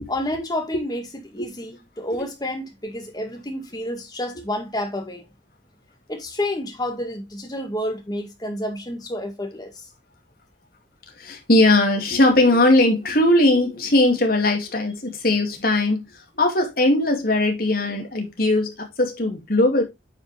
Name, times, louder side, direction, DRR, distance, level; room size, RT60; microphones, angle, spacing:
voice 1, 0.1-1.0 1.3-5.3 6.1-9.7, left 1 dB, 20° left, 2.0 m, -29 dB
voice 2, 11.2-19.8, left 1 dB, 50° left, 2.4 m, -19 dB
9.3 x 5.3 x 3.4 m
head